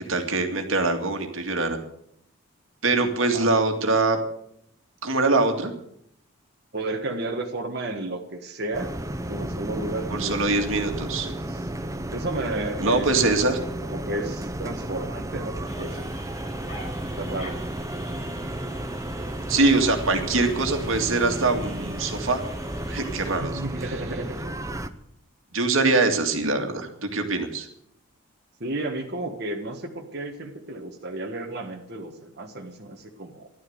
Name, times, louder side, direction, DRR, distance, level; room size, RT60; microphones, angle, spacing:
voice 1, 0.1-1.8 2.8-4.2 5.0-5.7 10.1-11.3 12.8-13.6 19.5-22.4 22.9-23.6 25.5-27.7, right 3 dB, 70° right, 5 dB, 2.2 m, -23 dB
voice 2, 6.7-8.9 9.3-10.4 11.1-11.7 12.1-13.2 13.8-16.1 17.2-17.5 23.4-24.4 28.6-33.5, right 2 dB, 50° right, 1 dB, 1.5 m, -32 dB
sound 1, 8.7-24.9, right 1 dB, 15° right, 0.7 m, -33 dB
sound 2, 15.6-23.4, left 1 dB, 30° left, 5.9 m, -44 dB
14.0 x 11.5 x 8.0 m, 0.72 s
head